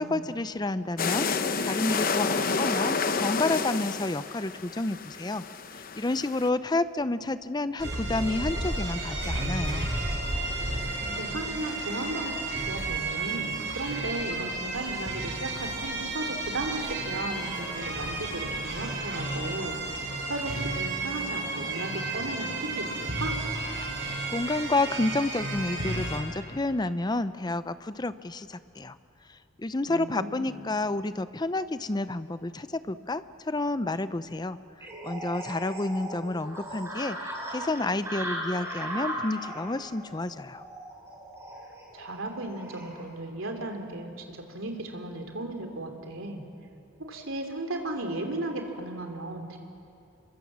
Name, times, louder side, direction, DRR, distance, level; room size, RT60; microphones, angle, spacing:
voice 1, 0.0-5.4 5.7-9.9 24.0-29.0 29.3-40.6, left 2 dB, 20° left, 13 dB, 0.5 m, -30 dB
sound 1, 1.0-6.5, left 4 dB, 45° left, 0.8 m, -29 dB
sound 2, 7.8-26.2, right 2 dB, 60° right, 4.8 m, -32 dB
voice 2, 11.2-19.8 20.3-23.4 29.8-30.6 41.9-46.4 47.0-49.6, right 2 dB, 75° right, 4 dB, 2.8 m, -35 dB
sound 3, 34.8-43.0, right 1 dB, 15° right, 4.3 m, -38 dB
26.5 x 23.0 x 7.4 m, 2.6 s
head